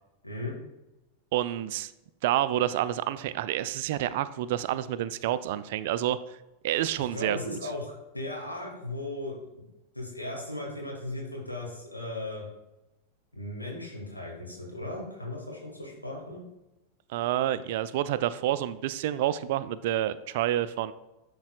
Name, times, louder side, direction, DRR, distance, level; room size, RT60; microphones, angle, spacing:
voice 1, 1.3-1.9 2.2-6.4 6.6-7.6 17.1-20.9, right 12 dB, 50° right, 15 dB, 0.3 m, -28 dB
voice 2, 7.0-9.6 9.9-12.4 13.3-16.4, left 2 dB, 85° left, -3 dB, 1.8 m, -37 dB
11.0 x 4.0 x 2.3 m, 0.97 s
figure-of-eight pair, 90°, 0 cm